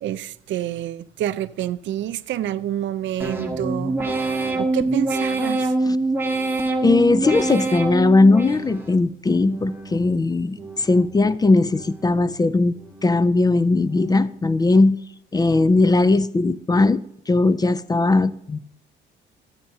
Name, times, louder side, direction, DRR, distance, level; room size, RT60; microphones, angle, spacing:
voice 1, 0.0-4.0 4.6-5.7, right 12 dB, 70° right, 0.5 m, -28 dB
sound 1, 3.2-9.0 9.4-10.1 10.5-11.2 11.6-12.3 12.7-13.3 13.8-14.4, right 2 dB, 10° right, 1.3 m, -26 dB
voice 2, 6.8-12.7 13.0-15.0 15.3-17.0 17.3-18.7, left 3 dB, 20° left, 0.4 m, -18 dB
13.5 x 8.8 x 2.7 m
cardioid pair, 90°, 20 cm